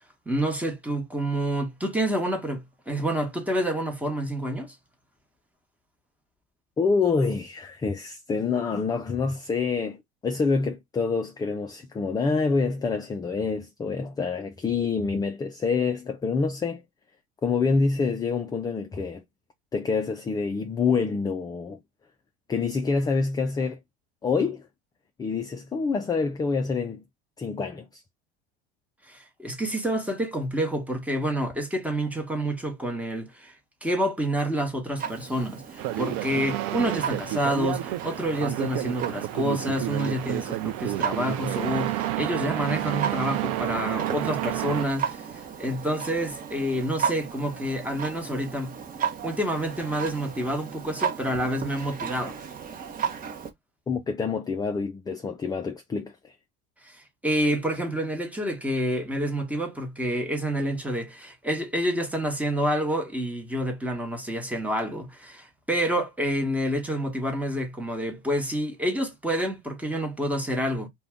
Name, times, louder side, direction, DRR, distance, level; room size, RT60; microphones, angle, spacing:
voice 1, 0.3-4.7 29.1-33.5 33.8-48.8 49.2-52.4 56.9-70.9, equal, 5° right, 1.0 m, -28 dB
voice 2, 6.8-16.8 17.4-19.2 19.7-21.8 22.5-23.8 24.2-24.6 25.2-27.0 27.4-28.0 53.9-56.1, left 4 dB, 15° left, 0.3 m, -26 dB
Clock, 35.0-53.5, right 7 dB, 25° right, 0.8 m, -35 dB
sound 1, 35.8-44.8, right 14 dB, 55° right, 0.5 m, -30 dB
2.6 x 2.2 x 3.4 m
hypercardioid pair, 90°, 31 cm